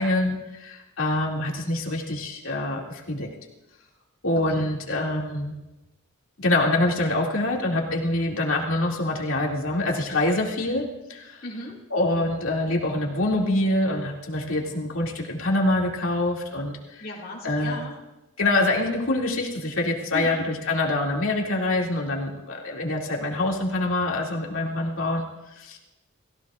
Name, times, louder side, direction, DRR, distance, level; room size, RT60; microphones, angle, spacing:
voice 1, 0.0-3.3 4.2-5.6 6.4-11.4 11.9-17.1 17.4-17.8 18.4-25.8, left 2 dB, 75° left, -2 dB, 2.4 m, -25 dB
voice 2, 11.4-11.8 17.0-17.9 20.1-20.5, left 1 dB, 45° left, -3 dB, 2.2 m, -37 dB
30.0 x 15.5 x 2.5 m, 1.0 s
head